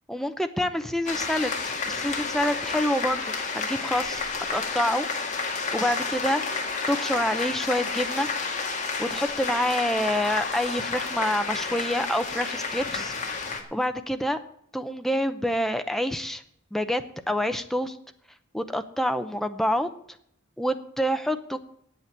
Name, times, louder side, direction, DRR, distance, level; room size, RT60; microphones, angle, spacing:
voice 1, 0.1-5.1 5.7-6.4 6.9-8.3 9.0-13.1 13.7-14.4 14.7-16.4 16.7-18.0 18.5-19.9 20.6-21.6, equal, ahead, 8 dB, 0.7 m, -27 dB
sound 1, 1.1-13.6, left 4 dB, 40° left, 1.8 m, -30 dB
8.6 x 8.4 x 9.2 m, 0.70 s
head